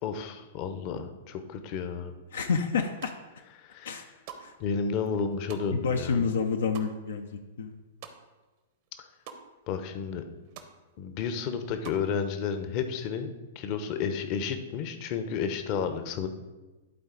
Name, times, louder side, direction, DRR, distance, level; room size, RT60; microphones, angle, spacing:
voice 1, 0.0-2.1 3.6-3.9 4.6-6.2 9.7-10.2 11.0-16.3, left 6 dB, 45° left, 8 dB, 0.8 m, -32 dB
voice 2, 2.3-3.1 3.8-4.0 4.4-4.5 5.7-7.8, left 5 dB, 75° left, 5 dB, 0.5 m, -29 dB
sound 1, 2.8-3.4 3.8-8.6 8.8-9.4 9.8-9.9 10.1-10.7 11.1-12.1, right 7 dB, 50° right, 0.9 m, -47 dB
11.5 x 4.0 x 3.9 m, 1.2 s
hypercardioid pair, 110°, 0 cm